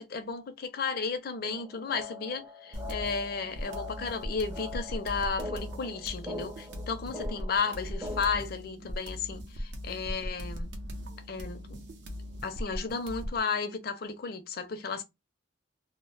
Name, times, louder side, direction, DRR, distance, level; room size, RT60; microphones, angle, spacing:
voice 1, 0.0-10.8 11.3-11.8 12.4-15.0, left 5 dB, 55° left, 0.4 m, -33 dB
sound 1, 1.4-8.4, left 2 dB, 15° right, 0.5 m, -43 dB
sound 2, 2.7-13.4, equal, 70° right, 0.6 m, -39 dB
2.0 x 2.0 x 3.7 m
head